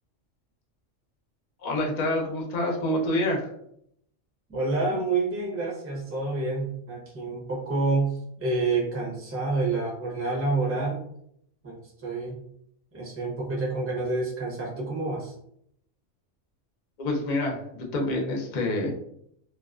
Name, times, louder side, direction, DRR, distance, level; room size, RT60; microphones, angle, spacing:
voice 1, 1.6-3.5 17.0-18.9, left 1 dB, 50° left, 0 dB, 0.5 m, -27 dB
voice 2, 4.5-11.0 11.6-12.4 12.9-15.3, right 3 dB, 15° right, -5 dB, 0.5 m, -28 dB
2.4 x 2.2 x 2.4 m, 0.71 s
omnidirectional pair, 1.3 m